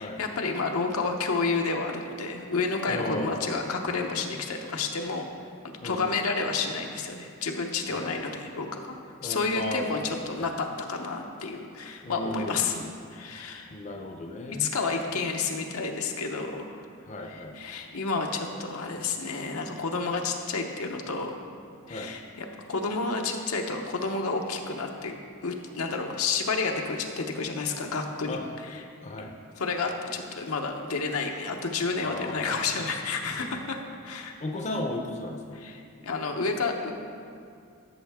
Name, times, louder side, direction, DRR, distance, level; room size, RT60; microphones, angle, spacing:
voice 1, 0.0-5.3 5.6-8.9 9.2-12.8 13.1-13.7 14.5-16.8 17.2-21.4 21.9-28.9 29.6-33.8 34.0-34.3 35.5-36.9, left 4 dB, 80° left, 3 dB, 0.8 m, -30 dB
voice 2, 2.9-3.7 5.8-6.0 7.9-8.1 9.2-9.9 10.4-10.5 12.0-12.9 13.7-14.7 17.0-17.6 21.9-22.1 28.3-28.4 29.0-29.3 32.0-32.5 33.3-33.4 34.4-35.6, left 1 dB, 35° left, 2 dB, 0.6 m, -35 dB
13.0 x 6.4 x 3.5 m, 2.4 s
head